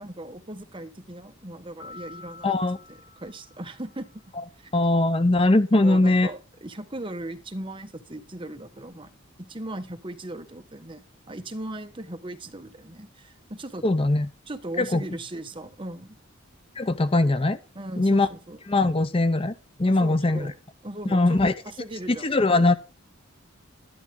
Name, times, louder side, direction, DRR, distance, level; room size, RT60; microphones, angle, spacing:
voice 1, 0.0-2.6 2.9-4.1 4.6-4.7 5.7-9.1 9.4-13.9 14.5-16.2 17.7-18.6 19.9-20.6 20.8-22.3, right 1 dB, 25° right, 8 dB, 1.2 m, -38 dB
sound 1, 1.8-4.3, left 4 dB, 85° left, 3.7 m, -48 dB
voice 2, 2.4-2.8 4.7-6.3 13.8-14.3 14.8-15.0 16.8-17.6 18.0-18.3 18.7-19.5 19.8-20.5 21.1-21.5 22.2-22.7, left 2 dB, 25° left, 12 dB, 0.6 m, -21 dB
12.0 x 11.0 x 3.8 m, 0.30 s
head